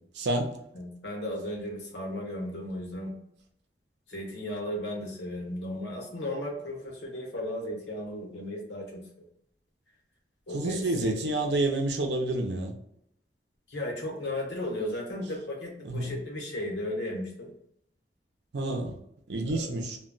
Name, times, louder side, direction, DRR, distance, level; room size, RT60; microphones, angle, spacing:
voice 1, 0.2-0.5 10.5-12.7 15.8-16.1 18.5-19.0 19.3-20.0, right 2 dB, 85° right, 0.5 m, -28 dB
voice 2, 0.7-3.1 4.1-9.0 10.5-11.2 13.7-17.5 19.5-19.8, left 1 dB, 90° left, 0.9 m, -35 dB
2.2 x 2.2 x 3.7 m
head